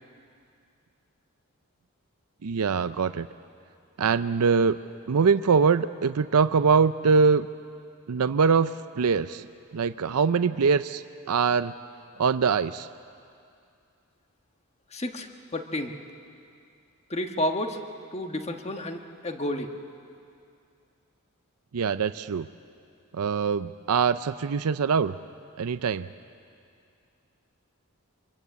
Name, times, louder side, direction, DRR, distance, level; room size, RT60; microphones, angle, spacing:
voice 1, 2.4-3.3 4.0-4.8 5.1-7.5 8.1-9.5 9.7-11.7 12.2-12.9 21.7-22.5 23.1-25.1 25.6-26.1, right 5 dB, 85° right, 12 dB, 0.5 m, -23 dB
voice 2, 14.9-15.9 17.1-17.8 18.1-19.7, left 1 dB, 30° left, 5 dB, 1.3 m, -31 dB
26.0 x 21.5 x 8.2 m, 2.4 s
head